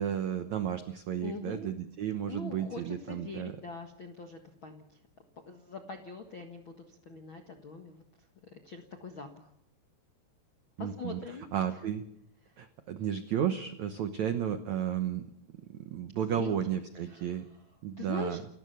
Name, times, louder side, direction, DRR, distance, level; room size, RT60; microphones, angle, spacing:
voice 1, 0.0-3.6 10.8-11.2 11.5-12.0 12.6-15.2 15.8-17.4 17.8-18.4, right 9 dB, 85° right, 9 dB, 1.6 m, -33 dB
voice 2, 1.2-1.7 2.3-5.0 5.5-8.0 8.4-9.5 10.8-11.5 12.4-12.5 16.3-17.4 18.0-18.4, left 3 dB, 65° left, 5 dB, 1.2 m, -43 dB
30.0 x 14.5 x 6.8 m, 0.77 s
omnidirectional pair, 5.0 m